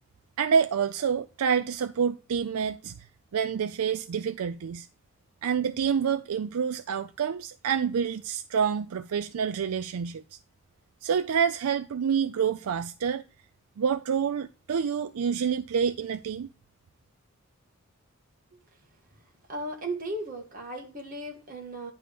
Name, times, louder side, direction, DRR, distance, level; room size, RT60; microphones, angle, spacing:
voice 1, 0.4-3.1 3.3-4.9 5.4-10.2 11.0-13.2 13.8-16.5, right 7 dB, 85° right, 0.4 m, -27 dB
voice 2, 19.5-21.9, right 1 dB, 40° right, 1.7 m, -36 dB
10.0 x 3.5 x 6.6 m
head